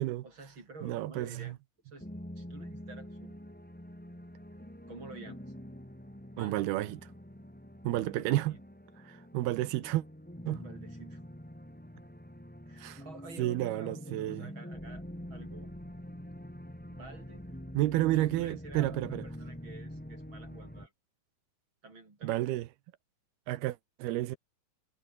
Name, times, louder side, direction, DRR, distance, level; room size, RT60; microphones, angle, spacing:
voice 1, 0.2-1.6 1.8-2.1 2.4-3.4 4.9-5.4 6.3-6.6 8.1-8.6 10.6-11.2 12.7-15.0 15.3-15.7 16.9-17.4 18.1-20.9 21.8-22.6, right 3 dB, 25° right, 6.2 m, -50 dB
voice 2, 0.8-1.5 6.4-7.0 7.8-8.5 9.1-10.0 10.5-10.6 12.8-13.0 13.4-14.5 17.7-19.2 22.2-22.7 23.5-24.4, right 16 dB, 75° right, 2.5 m, -31 dB
sound 1, 2.0-20.9, equal, ahead, 2.6 m, -46 dB
omnidirectional pair, 5.3 m